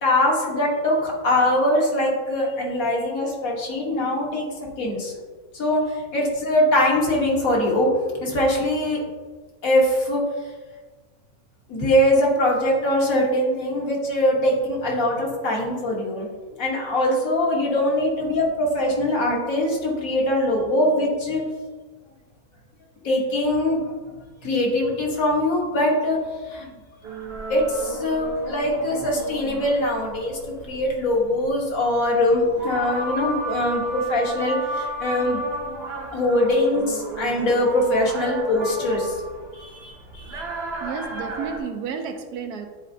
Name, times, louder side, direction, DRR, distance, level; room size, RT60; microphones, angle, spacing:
voice 1, 0.0-5.1 5.5-7.9 8.2-9.0 9.6-10.2 11.7-16.3 16.6-21.4 23.0-23.8 24.4-26.7 27.5-30.4 30.6-35.4 36.1-39.2 39.5-40.4, left 1 dB, 65° left, -2 dB, 1.7 m, -22 dB
sound 1, 27.0-41.6, right 2 dB, 50° right, 0.9 m, -33 dB
voice 2, 40.8-42.7, right 6 dB, 80° right, 6 dB, 1.2 m, -31 dB
9.5 x 4.2 x 2.7 m, 1.4 s
omnidirectional pair, 1.6 m